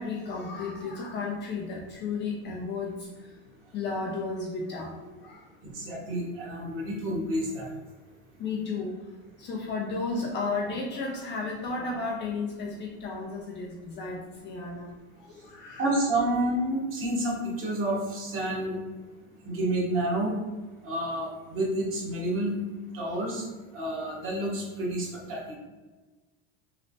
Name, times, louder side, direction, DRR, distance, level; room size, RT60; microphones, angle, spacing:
voice 1, 0.0-2.9 3.7-5.4 8.4-8.9 9.4-14.9 15.3-15.9, left 3 dB, 35° left, -1 dB, 0.4 m, -33 dB
voice 2, 5.6-7.7 15.8-18.7 19.4-20.3 20.8-22.6 22.9-23.4 23.7-25.5, right 1 dB, 40° right, -3 dB, 1.1 m, -29 dB
3.1 x 2.0 x 2.7 m, 1.2 s
supercardioid pair, 125°, 34 cm